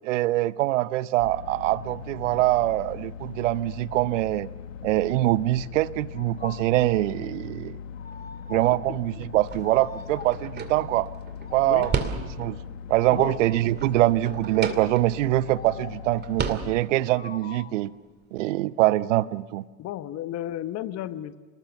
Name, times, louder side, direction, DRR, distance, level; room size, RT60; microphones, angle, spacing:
voice 1, 0.0-4.5 4.8-7.8 8.5-11.1 11.5-11.9 12.4-12.6 12.9-17.9 18.3-19.6, right 16 dB, 65° right, 19 dB, 0.8 m, -24 dB
sound 1, 1.2-16.8, left 7 dB, 65° left, 1.4 m, -40 dB
sound 2, 6.1-7.0 7.9-8.9 9.6-10.5 11.4-12.2 13.1-13.8 15.4-16.2 17.1-17.9, left 6 dB, 20° left, 1.4 m, -44 dB
sound 3, 9.4-12.7 13.1-15.4 15.7-15.8 16.1-17.3, right 6 dB, 25° right, 2.4 m, -33 dB
voice 2, 19.8-21.3, left 12 dB, 40° left, 13 dB, 1.2 m, -33 dB
28.0 x 19.5 x 7.0 m, 1.3 s
figure-of-eight pair, 80°, 41 cm